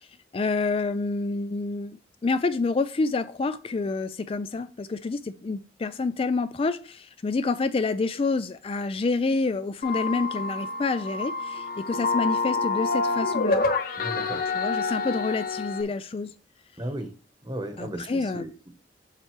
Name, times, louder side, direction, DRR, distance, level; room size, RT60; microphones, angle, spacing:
voice 1, 0.3-2.0 2.2-13.6 14.5-16.3 17.8-18.5, left 3 dB, 30° left, 0.3 m, -28 dB
sound 1, 9.8-15.8, left 3 dB, 55° left, 0.9 m, -27 dB
voice 2, 14.0-14.4 16.8-17.1 17.4-18.7, right 1 dB, 25° right, 1.1 m, -35 dB
7.4 x 6.5 x 3.2 m
head